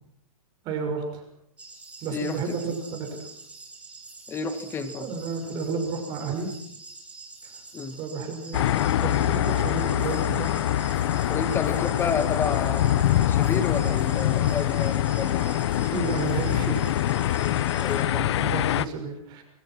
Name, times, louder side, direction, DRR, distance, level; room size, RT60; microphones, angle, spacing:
voice 1, 0.6-1.3 2.0-3.3 5.0-6.5 7.4-7.6 8.0-8.7 9.0-10.7 15.8-16.9 17.9-19.4, right 4 dB, 25° right, 4 dB, 6.2 m, -32 dB
sound 1, 1.6-18.0, right 3 dB, 5° right, 4.0 m, -45 dB
voice 2, 2.1-2.8 4.3-5.1 7.7-8.0 11.3-15.7 17.7-18.4, left 5 dB, 15° left, 10 dB, 2.0 m, -31 dB
sound 2, 8.5-18.9, left 12 dB, 50° left, 1.0 m, -24 dB
26.0 x 24.0 x 6.2 m, 0.71 s
hypercardioid pair, 160°, 18 cm